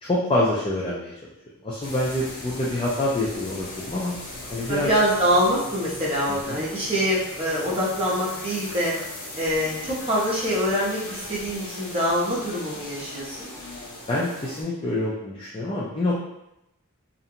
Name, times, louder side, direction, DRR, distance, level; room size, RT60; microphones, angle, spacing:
voice 1, 0.0-1.1 1.6-4.1 4.5-4.9 6.3-6.6 14.1-16.2, left 1 dB, 25° left, -6 dB, 0.4 m, -26 dB
sound 1, 1.8-14.6, left 1 dB, 75° left, 0.7 m, -38 dB
voice 2, 4.7-8.9 9.4-13.5, equal, 25° right, -7 dB, 0.8 m, -24 dB
2.5 x 2.1 x 2.8 m, 0.86 s
head